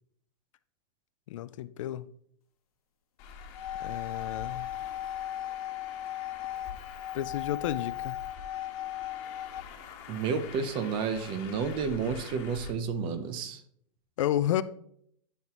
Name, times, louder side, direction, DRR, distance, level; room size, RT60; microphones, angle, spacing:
voice 1, 1.3-2.1 3.8-4.7 7.1-8.2 14.2-14.6, left 12 dB, 60° left, 0.5 m, -31 dB
Traffic noise roadway noise, 3.2-12.7, left 6 dB, 35° left, 1.4 m, -46 dB
sound 1, 3.4-9.6, left 12 dB, 85° left, 1.3 m, -37 dB
voice 2, 10.1-13.6, right 5 dB, 25° right, 0.7 m, -31 dB
11.0 x 5.9 x 3.0 m
supercardioid pair, 160°, 19 cm